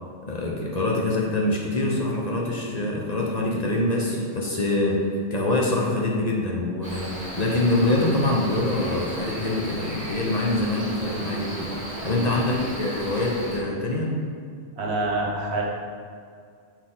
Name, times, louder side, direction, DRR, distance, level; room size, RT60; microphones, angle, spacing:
voice 1, 0.2-5.0 5.3-11.7 12.0-14.1, left 2 dB, 40° left, -2 dB, 0.7 m, -25 dB
Cricket, 6.8-13.6, right 1 dB, 35° right, 1.3 m, -35 dB
voice 2, 12.0-12.4 14.8-15.6, right 2 dB, 60° right, -2 dB, 1.2 m, -27 dB
6.2 x 4.2 x 3.8 m, 2.2 s
omnidirectional pair, 1.3 m